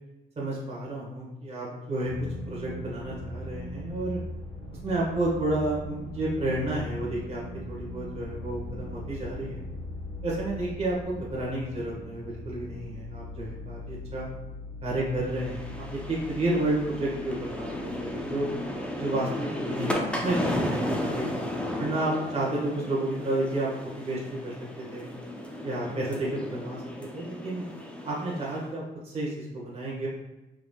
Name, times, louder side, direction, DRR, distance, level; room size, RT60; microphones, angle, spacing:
voice 1, 0.4-2.1 2.5-4.2 4.8-7.4 7.7-9.7 10.2-14.3 14.8-18.5 19.0-21.3 21.8-23.7 24.0-24.5 24.9-25.1 25.6-26.8 27.1-27.6 28.0-30.1, right 1 dB, 30° right, -5 dB, 1.4 m, -31 dB
sound 1, 2.0-21.1, left 1 dB, 40° left, 1.3 m, -40 dB
sound 2, 15.2-28.7, left 1 dB, 5° left, 0.6 m, -34 dB
4.7 x 3.6 x 2.3 m, 0.99 s
cardioid pair, 90°, 20 cm